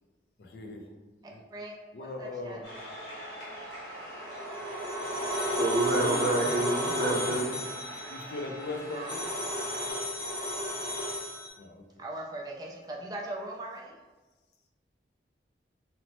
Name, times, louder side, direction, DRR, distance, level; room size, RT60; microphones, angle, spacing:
voice 1, 0.4-0.9 1.3-1.4 1.9-2.7 5.9-6.2 7.0-7.4 8.1-9.3 11.6-11.8, left 3 dB, 65° left, 2 dB, 0.4 m, -39 dB
voice 2, 1.2-2.7 8.9-9.9 12.0-14.0, right 1 dB, 20° right, -1 dB, 0.3 m, -41 dB
sound 1, 2.6-9.9, equal, 85° left, 0.9 m, -43 dB
sound 2, 4.0-11.5, equal, 30° left, 0.7 m, -33 dB
voice 3, 5.6-7.5, right 2 dB, 70° right, -1 dB, 0.5 m, -28 dB
2.8 x 2.0 x 2.9 m, 1.2 s
head